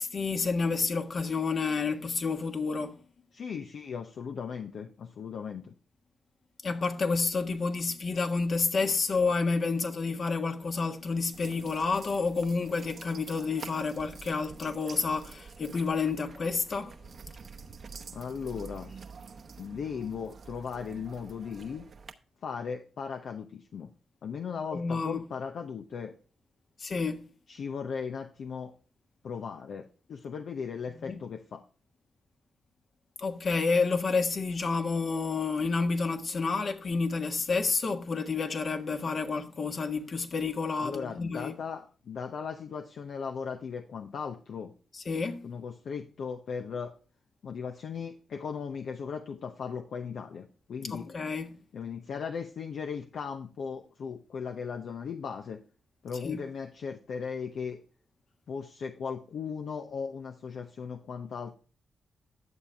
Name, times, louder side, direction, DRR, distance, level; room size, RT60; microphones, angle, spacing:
voice 1, 0.0-3.0 6.6-16.9 24.7-25.2 26.8-27.2 31.0-31.2 33.2-41.6 44.9-45.4 50.9-51.5 56.2-56.4, left 4 dB, 55° left, 1.5 m, -29 dB
voice 2, 3.3-5.7 18.1-18.9 19.6-21.9 22.4-23.9 24.2-26.2 27.5-28.7 29.2-31.6 40.8-44.7 45.4-46.9 47.4-51.2 51.7-55.6 56.0-57.8 58.5-61.5, left 6 dB, 70° left, 0.8 m, -37 dB
sound 1, 11.3-22.1, right 5 dB, 60° right, 1.0 m, -48 dB
11.0 x 7.2 x 3.4 m
supercardioid pair, 50°, 0 cm